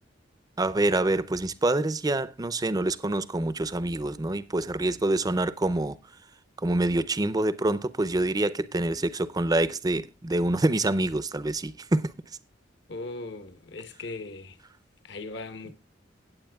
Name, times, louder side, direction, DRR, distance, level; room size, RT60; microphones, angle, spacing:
voice 1, 0.6-6.0 6.6-12.1, right 2 dB, 20° right, 0.5 m, -26 dB
voice 2, 12.9-14.6 15.0-15.7, left 3 dB, 65° left, 1.1 m, -38 dB
17.5 x 8.0 x 2.3 m
head